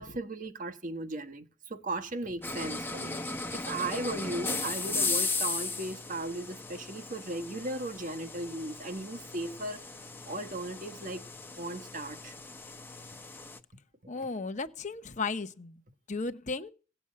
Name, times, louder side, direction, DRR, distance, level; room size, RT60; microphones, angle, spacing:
voice 1, 0.0-9.8 10.3-11.2 11.6-12.3 14.0-14.3, right 2 dB, 40° right, 1.3 m, -37 dB
sound 1, 2.4-13.6, left 3 dB, 10° left, 0.9 m, -37 dB
voice 2, 14.1-15.8 16.1-16.7, left 3 dB, 40° left, 0.9 m, -35 dB
17.5 x 7.1 x 8.6 m
head